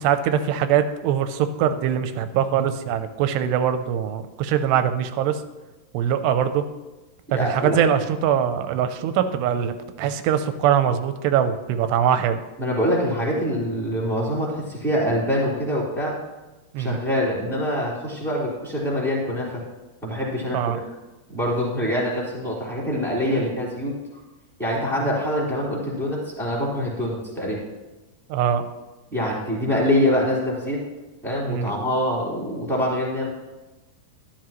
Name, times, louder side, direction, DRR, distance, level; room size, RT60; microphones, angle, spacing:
voice 1, 0.0-5.4 5.9-6.7 7.3-12.4 16.7-17.0 20.5-20.8 23.3-23.4 25.0-25.1 28.3-28.7 31.5-31.7, right 9 dB, 85° right, 10 dB, 2.5 m, -22 dB
voice 2, 7.3-7.8 12.6-16.2 16.8-19.6 20.0-20.8 21.3-23.9 24.6-27.6 29.1-30.8 31.2-33.3, equal, ahead, -6 dB, 2.7 m, -24 dB
13.0 x 12.5 x 3.0 m, 1.1 s
omnidirectional pair, 5.2 m